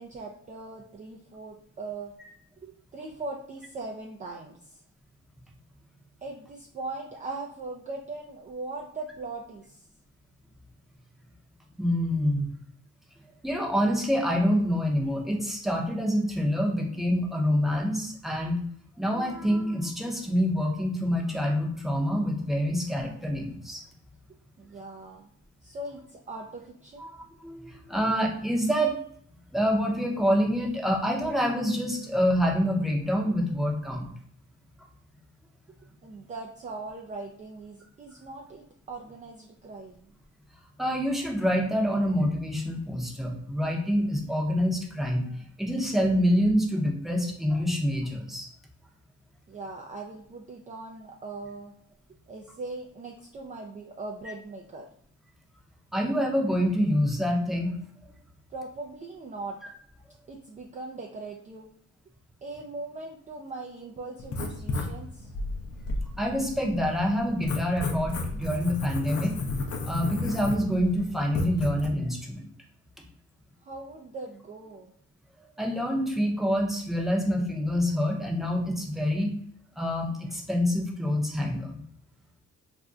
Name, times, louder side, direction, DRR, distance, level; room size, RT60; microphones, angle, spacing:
voice 1, 0.0-2.1 2.6-4.8 6.2-9.9 24.6-25.3 25.6-27.1 36.0-40.1 49.5-51.7 52.3-54.9 58.5-59.6 60.3-61.7 62.4-65.3 73.6-74.9, right 3 dB, 25° right, 0 dB, 0.4 m, -40 dB
voice 2, 11.8-12.5 13.4-18.6 19.0-23.8 27.0-29.0 29.5-34.1 40.8-48.5 55.9-57.8 59.6-59.7 66.2-69.3 69.9-72.5 75.6-79.3 79.8-81.8, equal, ahead, -1 dB, 0.7 m, -26 dB
Writing, 64.2-71.9, left 2 dB, 50° left, 0.6 m, -33 dB
2.5 x 2.2 x 3.6 m, 0.64 s
cardioid pair, 90°, 30 cm